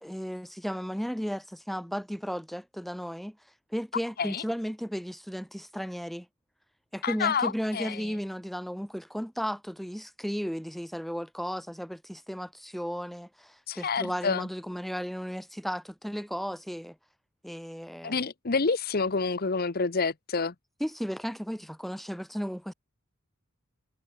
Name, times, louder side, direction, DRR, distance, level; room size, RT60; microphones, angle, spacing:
voice 1, 0.0-3.4 3.7-6.3 6.9-16.9 17.4-18.2 20.8-22.7, equal, ahead, 1.7 m, -34 dB
voice 2, 7.0-8.0 13.7-14.5 18.0-20.5, left 4 dB, 45° left, 0.9 m, -28 dB
head